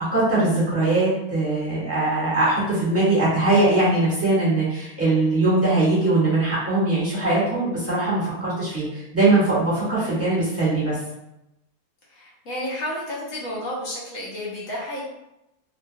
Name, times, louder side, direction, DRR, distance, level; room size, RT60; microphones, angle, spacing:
voice 1, 0.1-11.0, right 2 dB, 10° right, -9 dB, 1.1 m, -21 dB
voice 2, 12.1-15.0, left 1 dB, 70° left, -5 dB, 1.1 m, -31 dB
2.8 x 2.2 x 2.6 m, 0.89 s
omnidirectional pair, 1.5 m